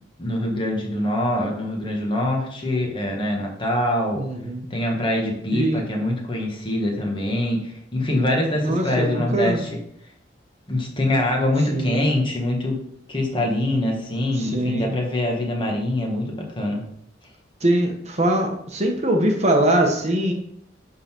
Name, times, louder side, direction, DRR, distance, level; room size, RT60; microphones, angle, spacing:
voice 1, 0.2-4.2 4.7-9.8 10.7-12.8 13.1-16.8, left 1 dB, 25° left, 0 dB, 1.5 m, -24 dB
voice 2, 4.2-4.7 5.5-5.8 8.6-9.6 11.7-12.0 14.4-14.9 17.6-20.3, right 1 dB, 35° right, 2 dB, 1.1 m, -22 dB
10.5 x 3.9 x 4.5 m, 0.72 s
head